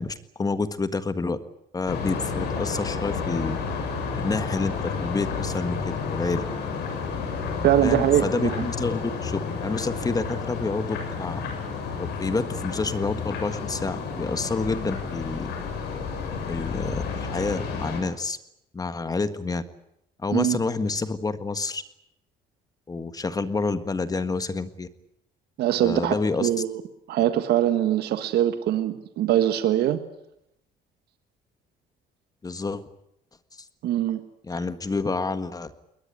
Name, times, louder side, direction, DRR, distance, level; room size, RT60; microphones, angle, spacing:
voice 1, 0.0-1.4 1.7-3.6 4.2-6.4 7.8-11.5 12.0-15.5 16.5-18.4 18.7-19.6 20.2-21.8 22.9-24.9 25.8-26.5 32.4-32.8 34.4-35.7, left 3 dB, 20° left, 1.6 m, -28 dB
sound 1, 1.9-18.0, left 5 dB, 80° left, 7.1 m, -31 dB
voice 2, 7.6-8.7 20.3-20.6 25.6-26.8 27.1-30.0 33.8-34.2, right 12 dB, 75° right, 1.5 m, -23 dB
21.5 x 20.0 x 9.9 m
cardioid pair, 110°, 17 cm